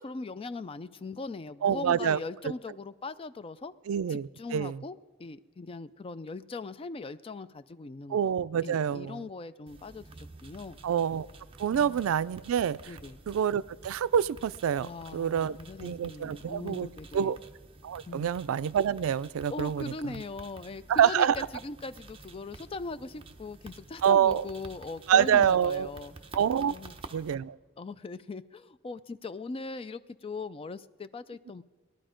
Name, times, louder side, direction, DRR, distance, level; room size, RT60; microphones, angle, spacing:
voice 1, 0.0-3.7 4.1-8.3 8.6-10.8 11.7-12.0 12.9-13.2 14.8-17.4 18.1-18.3 19.5-26.1 26.6-26.9 27.8-31.6, left 3 dB, 25° left, 14 dB, 0.3 m, -40 dB
voice 2, 1.6-2.2 3.9-4.8 8.1-9.2 10.8-11.3 11.6-13.0 13.3-16.9 17.1-17.4 17.8-20.1 20.9-21.4 24.0-24.4 25.1-25.9 26.3-26.7 27.1-27.6, right 8 dB, 90° right, 17 dB, 0.3 m, -26 dB
sound 1, 9.7-27.3, right 3 dB, 25° right, 0.8 m, -50 dB
19.0 x 11.5 x 5.1 m, 1.3 s
head